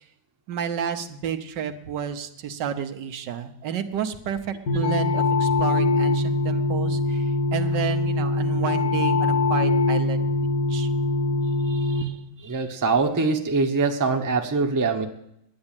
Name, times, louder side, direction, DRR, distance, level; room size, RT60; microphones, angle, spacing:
voice 1, 0.5-7.2 7.5-10.3 10.7-10.9, right 8 dB, 85° right, 8 dB, 1.6 m, -30 dB
sound 1, 4.7-12.0, left 2 dB, 70° left, 1.7 m, -23 dB
voice 2, 12.4-15.1, right 4 dB, 15° right, 5 dB, 0.6 m, -23 dB
10.0 x 9.6 x 8.9 m, 0.80 s
omnidirectional pair, 1.8 m